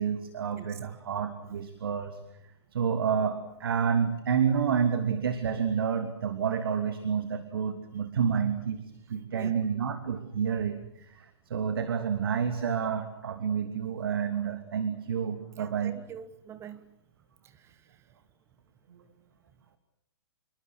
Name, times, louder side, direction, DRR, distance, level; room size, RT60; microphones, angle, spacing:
voice 1, 0.0-2.2 2.7-8.8 9.1-16.0 18.9-19.0, right 7 dB, 60° right, 8 dB, 2.7 m, -29 dB
voice 2, 15.6-16.8 17.6-17.7, right 8 dB, 20° right, 13 dB, 1.3 m, -45 dB
27.5 x 23.5 x 8.0 m, 0.78 s
figure-of-eight pair, 115°, 14 cm